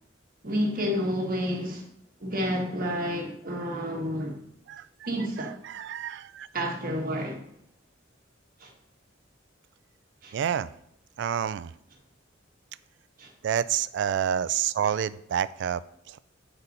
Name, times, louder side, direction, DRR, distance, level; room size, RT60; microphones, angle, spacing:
voice 1, 0.4-1.8 2.2-4.4 5.0-5.5 6.5-7.4 8.6-8.7 10.2-10.4 13.2-13.3, equal, 50° right, 1.3 m, -30 dB
voice 2, 5.4-6.5 10.3-10.7 11.2-11.7 13.4-15.8 16.1-16.2, right 9 dB, 65° right, 0.3 m, -28 dB
8.2 x 4.1 x 4.0 m
head